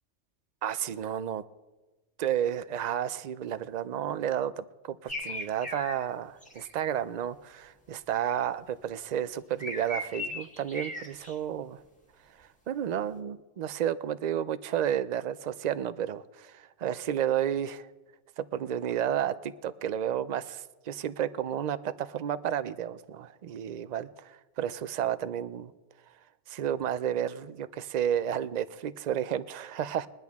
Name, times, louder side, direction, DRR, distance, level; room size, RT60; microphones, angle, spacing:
voice 1, 0.6-1.4 2.2-11.8 12.4-17.9 18.4-25.7 26.5-30.1, right 10 dB, 65° right, 14 dB, 0.4 m, -32 dB
sound 1, 5.1-6.0 6.4-6.7 9.6-11.3, left 1 dB, 5° left, 1.4 m, -37 dB
21.5 x 10.5 x 3.5 m, 1.2 s
omnidirectional pair, 1.3 m